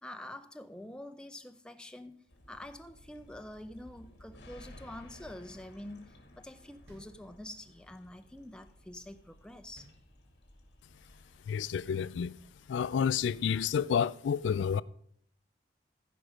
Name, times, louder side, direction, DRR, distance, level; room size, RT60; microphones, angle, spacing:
voice 1, 0.0-9.9, left 1 dB, 5° left, 0.4 m, -47 dB
sound 1, 2.3-13.9, left 1 dB, 65° left, 2.1 m, -57 dB
sound 2, 6.9-7.8 9.7-10.7, equal, 75° right, 2.4 m, -60 dB
voice 2, 11.5-12.3 12.7-14.8, left 7 dB, 85° left, 0.3 m, -30 dB
14.5 x 5.3 x 5.0 m
head